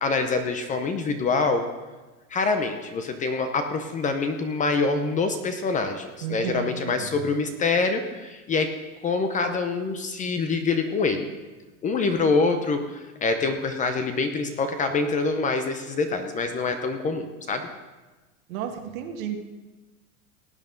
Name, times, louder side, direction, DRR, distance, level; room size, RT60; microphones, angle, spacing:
voice 1, 0.0-1.7 2.3-8.7 9.0-11.3 11.8-17.7, left 4 dB, 20° left, 7 dB, 0.6 m, -25 dB
voice 2, 6.2-7.2 18.5-19.4, right 8 dB, 70° right, 4 dB, 1.8 m, -33 dB
18.0 x 8.7 x 3.8 m, 1.2 s
supercardioid pair, 135°, 43 cm